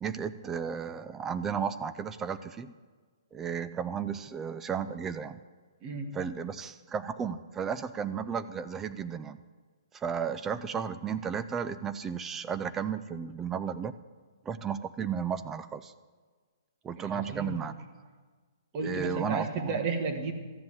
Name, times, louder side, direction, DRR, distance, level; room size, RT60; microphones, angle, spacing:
voice 1, 0.0-2.7 3.3-5.4 6.1-9.4 9.9-13.9 14.4-15.9 16.8-17.7 18.8-19.8, right 7 dB, 10° right, 13 dB, 0.3 m, -34 dB
voice 2, 5.8-6.2 17.0-17.6 18.7-20.3, right 4 dB, 30° right, 6 dB, 1.3 m, -33 dB
13.5 x 7.5 x 7.4 m, 1.5 s
hypercardioid pair, 155°, 2 cm